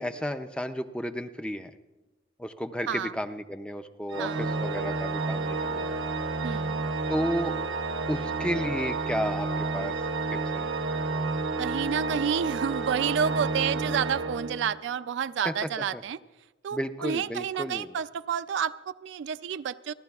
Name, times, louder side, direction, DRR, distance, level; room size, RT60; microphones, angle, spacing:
voice 1, 0.0-1.7 2.4-5.9 7.1-7.6 8.1-10.7 15.4-15.5 15.9-16.0 16.7-18.0, equal, 5° left, 8 dB, 0.4 m, -32 dB
Organ, 4.1-15.0, right 3 dB, 85° right, 0.8 m, -30 dB
voice 2, 4.2-4.5 6.4-6.8 11.6-16.2 16.6-19.9, right 7 dB, 65° right, 14 dB, 0.3 m, -30 dB
29.5 x 11.5 x 2.3 m, 1.1 s
head